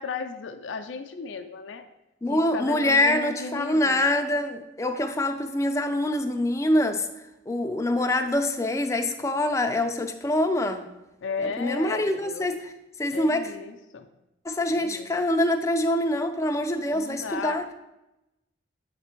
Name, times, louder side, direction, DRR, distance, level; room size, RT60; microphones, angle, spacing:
voice 1, 0.0-1.8 2.3-4.1 11.2-12.5 13.1-14.1 14.7-15.1 16.9-17.6, left 5 dB, 75° left, 5 dB, 0.4 m, -35 dB
voice 2, 2.2-7.1 7.5-10.9 11.6-12.7 13.0-13.5 14.4-17.7, left 1 dB, 15° left, 6 dB, 0.4 m, -25 dB
8.0 x 3.4 x 4.4 m, 0.95 s
head